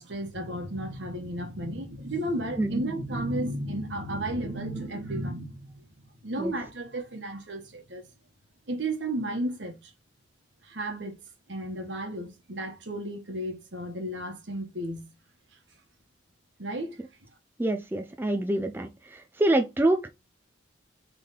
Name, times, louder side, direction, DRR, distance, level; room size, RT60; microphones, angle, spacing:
voice 1, 0.0-5.7 6.2-8.0 8.7-9.9 10.6-11.2 11.5-15.1 16.6-17.0, right 1 dB, 65° right, 1.2 m, -33 dB
voice 2, 17.6-20.1, right 1 dB, 10° right, 0.3 m, -26 dB
4.1 x 3.4 x 3.7 m
head